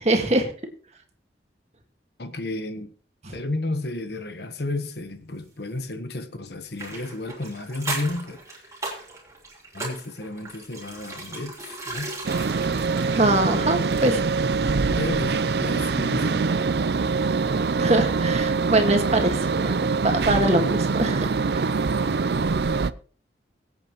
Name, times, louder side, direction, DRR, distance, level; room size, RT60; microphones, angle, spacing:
voice 1, 0.1-0.5 3.3-3.4 13.2-14.2 17.8-21.7, right 2 dB, 35° right, 1.8 m, -23 dB
voice 2, 2.2-2.9 3.3-8.8 9.7-12.1 14.9-16.5, left 2 dB, 70° left, 1.2 m, -32 dB
sound 1, 6.8-14.4 14.6-14.7, right 2 dB, 20° right, 3.5 m, -37 dB
sound 2, 12.2-22.9, right 4 dB, 65° right, 0.5 m, -24 dB
22.5 x 8.5 x 3.1 m
head